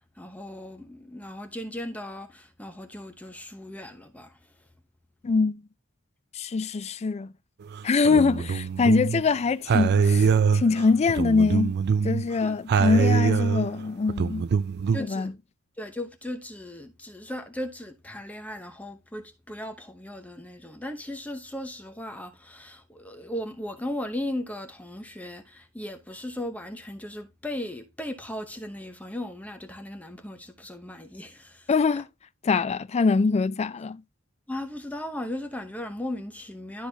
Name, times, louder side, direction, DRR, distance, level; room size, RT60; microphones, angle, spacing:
voice 1, 0.0-4.7 12.4-12.6 12.9-13.1 14.9-15.4 15.8-31.7 34.5-36.9, left 1 dB, 5° left, 0.9 m, -37 dB
voice 2, 5.2-5.6 6.3-7.3 7.8-11.7 12.0-14.5 15.1-15.3 31.7-32.1 32.4-34.0, left 4 dB, 30° left, 0.3 m, -23 dB
sound 1, 7.7-9.2 9.7-12.3 12.7-15.0, right 5 dB, 50° right, 0.4 m, -23 dB
12.0 x 4.0 x 2.8 m
head